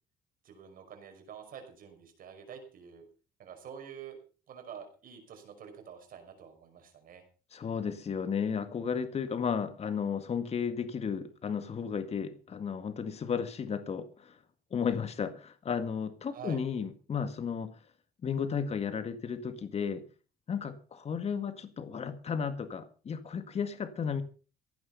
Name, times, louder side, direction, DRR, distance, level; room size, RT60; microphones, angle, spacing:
voice 1, 0.4-3.1 3.4-4.2 4.5-7.2 16.3-16.6, right 7 dB, 55° right, 5.6 m, -47 dB
voice 2, 7.5-14.4 14.7-17.7 18.2-20.0 20.5-24.2, left 6 dB, 40° left, 2.0 m, -34 dB
16.0 x 11.0 x 5.5 m
cardioid pair, 110°, 17 cm